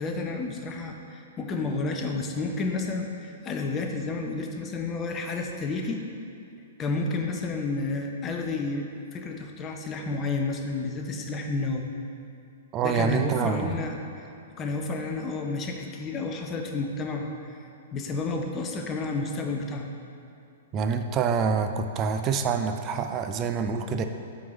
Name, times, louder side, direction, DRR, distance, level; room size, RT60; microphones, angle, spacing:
voice 1, 0.0-6.0 6.8-11.9 12.8-14.0 14.6-17.3 17.9-19.9, left 3 dB, 20° left, 3 dB, 0.6 m, -31 dB
voice 2, 12.7-13.7 20.7-24.0, right 6 dB, 25° right, 7 dB, 0.4 m, -26 dB
7.4 x 3.9 x 4.0 m, 2.6 s
figure-of-eight pair, 110°, 0 cm